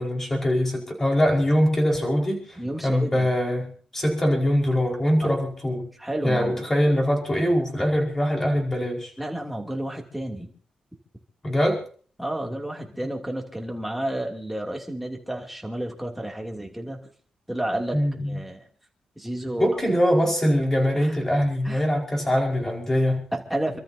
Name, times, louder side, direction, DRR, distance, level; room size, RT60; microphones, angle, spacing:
voice 1, 0.0-2.6 2.8-5.9 6.2-9.1 11.4-11.8 17.9-18.4 19.6-23.2, equal, 15° left, 0 dB, 4.9 m, -23 dB
voice 2, 2.6-3.3 6.0-6.7 9.2-10.5 12.2-17.0 17.5-18.0 18.3-18.6 19.2-19.8 20.9-21.2 21.6-21.8 23.3-23.8, right 1 dB, 5° right, 0 dB, 2.8 m, -31 dB
28.5 x 13.0 x 2.8 m, 0.44 s
wide cardioid pair, 140°, 2 cm